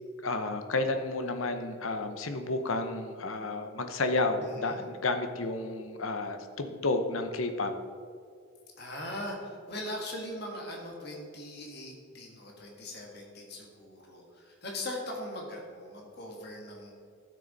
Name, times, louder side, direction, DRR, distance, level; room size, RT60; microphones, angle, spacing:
voice 1, 0.2-7.7, left 2 dB, 75° left, 7 dB, 0.9 m, -31 dB
voice 2, 4.4-4.8 8.8-16.9, left 1 dB, 50° left, 0 dB, 1.6 m, -40 dB
12.0 x 6.7 x 4.1 m, 2.2 s
head